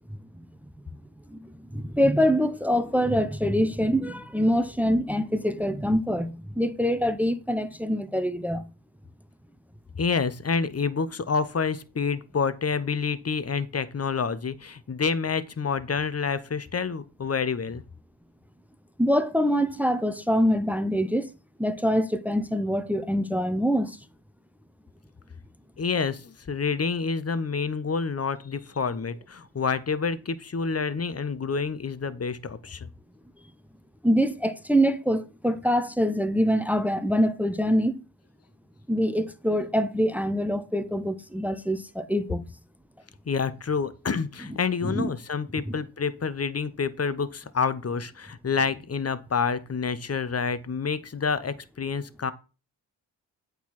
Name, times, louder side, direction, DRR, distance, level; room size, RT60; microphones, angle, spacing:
voice 1, 1.3-8.6 19.0-21.3 21.6-24.0 34.0-38.0 38.9-42.4 44.8-45.1 45.7-45.8, equal, 5° right, 0.8 m, -24 dB
voice 2, 9.9-17.8 25.8-32.9 43.3-52.3, left 5 dB, 30° left, 1.0 m, -28 dB
8.3 x 4.0 x 5.9 m
hypercardioid pair, 45°, 50 cm